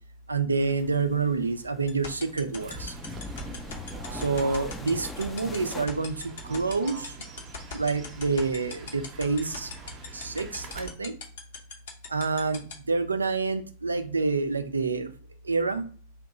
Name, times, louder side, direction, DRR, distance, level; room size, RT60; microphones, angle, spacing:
voice 1, 0.3-2.9 4.1-7.2 7.7-9.7 10.1-11.2 12.1-15.1 15.4-15.8, right 4 dB, 80° right, 9 dB, 0.3 m, -28 dB
Under the Jetty, 0.6-5.9, left 3 dB, 10° left, 0.4 m, -42 dB
sound 1, 1.9-12.7, left 5 dB, 60° left, 0.7 m, -37 dB
Fowl / Bird, 2.6-10.9, right 3 dB, 35° right, 0.6 m, -43 dB
2.7 x 2.1 x 3.7 m, 0.42 s
figure-of-eight pair, 90°, 0 cm